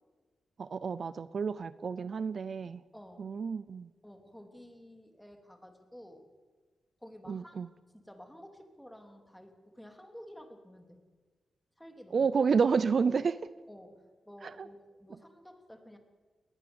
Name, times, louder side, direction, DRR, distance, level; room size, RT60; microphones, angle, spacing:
voice 1, 0.6-2.8 3.2-3.9 7.3-7.7 12.1-13.4 14.4-14.7, right 5 dB, 55° right, 16 dB, 0.6 m, -30 dB
voice 2, 2.9-3.3 4.0-6.3 7.0-7.6 7.9-11.0 11.8-12.3 13.7-16.0, equal, 5° left, 5 dB, 3.1 m, -52 dB
20.0 x 19.5 x 7.1 m, 1.4 s
cardioid pair, 85°, 0 cm